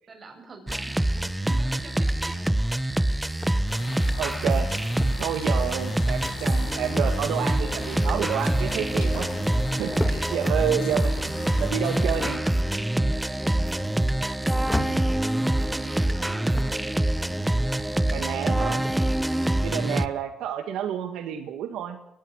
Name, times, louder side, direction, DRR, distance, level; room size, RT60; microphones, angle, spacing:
voice 1, 0.1-2.8 14.3-16.9, right 3 dB, 40° right, 5 dB, 6.9 m, -46 dB
sound 1, 0.7-20.1, right 1 dB, 10° right, 1.0 m, -25 dB
cloth moving close, 3.3-4.2 4.8-5.3 6.0-6.4 6.9-7.3 7.7-7.9 8.3-8.4 8.7-10.2 10.7-12.4 12.8-13.0 13.4-14.4 14.6-14.9 15.5-15.9 16.5-16.9 17.2-18.1 18.5-19.1, left 1 dB, 15° left, 3.1 m, -38 dB
sound 2, 3.7-12.3, left 6 dB, 80° left, 5.2 m, -41 dB
voice 2, 4.2-4.7 5.2-9.3 9.8-11.1 11.6-12.4 18.1-18.8 19.6-22.0, right 9 dB, 85° right, 7 dB, 1.9 m, -29 dB
23.0 x 19.0 x 6.5 m, 0.84 s
cardioid pair, 90°, 0 cm